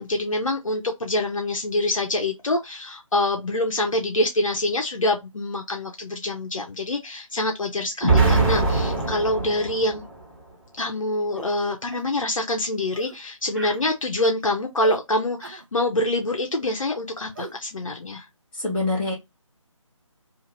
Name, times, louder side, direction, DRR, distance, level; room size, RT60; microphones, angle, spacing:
voice 1, 0.0-10.0 10.8-18.2, left 1 dB, 70° left, 0.8 m, -25 dB
Explosion, 8.0-10.2, right 3 dB, 20° right, 1.4 m, -21 dB
sound 1, 11.4-11.5 11.9-12.1 12.9-13.2 13.5-13.9 14.8-15.0 15.4-15.7 17.3-17.6, right 2 dB, 40° right, 0.5 m, -37 dB
voice 2, 18.5-19.1, left 2 dB, 5° left, 0.6 m, -25 dB
2.8 x 2.5 x 2.6 m
figure-of-eight pair, 160°, 17 cm